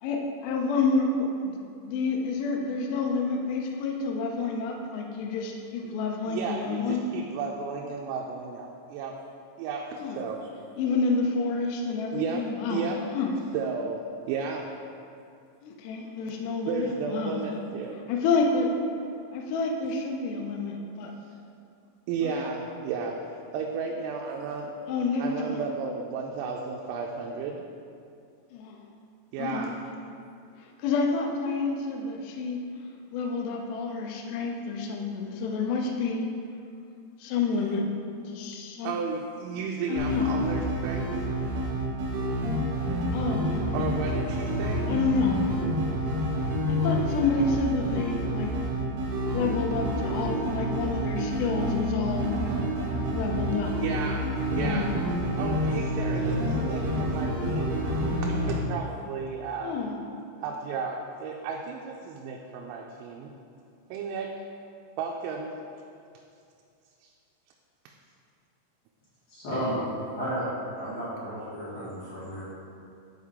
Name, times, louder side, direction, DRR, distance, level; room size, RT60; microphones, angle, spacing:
voice 1, 0.0-1.6 1.8-7.1 10.0-10.2 10.8-12.8 13.1-13.3 15.6-17.6 18.1-18.7 19.3-21.1 22.2-22.3 24.9-25.6 28.5-28.8 29.4-29.7 30.8-32.6 33.1-36.3 37.2-37.9 38.3-38.9 39.9-40.3 43.1-43.8 44.9-45.5 46.7-48.5 49.3-52.3 53.1-53.7 54.6-54.9 56.9-57.3 59.6-60.0, left 4 dB, 85° left, 1 dB, 2.4 m, -29 dB
voice 2, 6.3-9.2 9.6-10.5 12.1-12.4 12.7-13.0 13.5-14.0 14.3-14.7 16.7-17.9 22.1-23.2 23.5-24.7 25.2-27.6 29.3-29.7 38.8-41.2 43.7-44.8 53.8-54.3 54.6-54.9 55.4-57.8 58.2-59.8 60.4-63.3 63.9-64.5 65.0-65.5 67.0-67.1, right 5 dB, 85° right, 0 dB, 3.3 m, -33 dB
sound 1, 40.0-58.6, equal, 65° right, 2.2 m, -28 dB
voice 3, 69.3-69.8 70.1-70.5 70.7-72.4, equal, 50° left, -11 dB, 2.7 m, -33 dB
11.0 x 4.9 x 3.6 m, 2.4 s
omnidirectional pair, 5.9 m